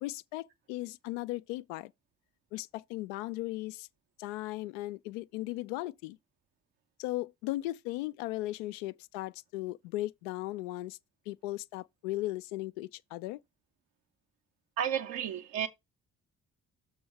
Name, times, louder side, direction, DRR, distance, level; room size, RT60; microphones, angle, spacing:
voice 1, 0.0-1.9 2.5-3.9 4.2-6.2 7.0-11.0 11.3-13.4, left 17 dB, 70° left, 0.5 m, -37 dB
voice 2, 14.8-15.7, right 9 dB, 65° right, 1.1 m, -32 dB
6.9 x 3.7 x 5.6 m
figure-of-eight pair, 40°, 39 cm